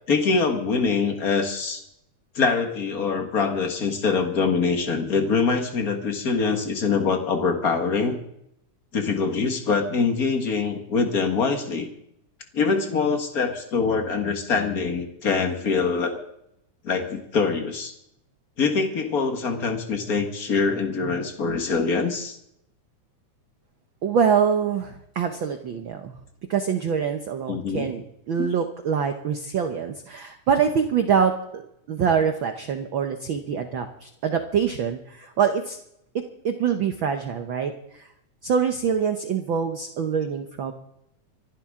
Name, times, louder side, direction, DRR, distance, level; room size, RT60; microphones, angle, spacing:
voice 1, 0.1-1.8 2.3-8.2 8.9-11.9 12.5-16.2 16.8-17.9 18.6-22.4 27.5-27.9 28.4-28.5, left 5 dB, 40° left, 5 dB, 1.4 m, -24 dB
voice 2, 24.0-26.2 26.5-31.6 31.9-35.8 36.4-38.1 38.4-40.7, right 7 dB, 85° right, 6 dB, 1.0 m, -25 dB
25.0 x 11.5 x 3.6 m, 0.76 s
omnidirectional pair, 3.6 m